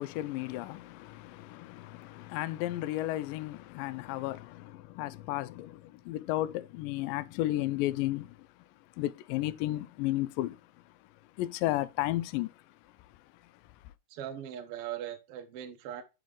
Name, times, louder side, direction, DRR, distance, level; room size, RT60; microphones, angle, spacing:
voice 1, 0.0-8.4 9.0-10.6 11.4-12.5, left 16 dB, 85° left, 2.2 m, -33 dB
voice 2, 14.1-16.0, right 10 dB, 80° right, 1.3 m, -40 dB
7.0 x 5.2 x 3.7 m
omnidirectional pair, 4.0 m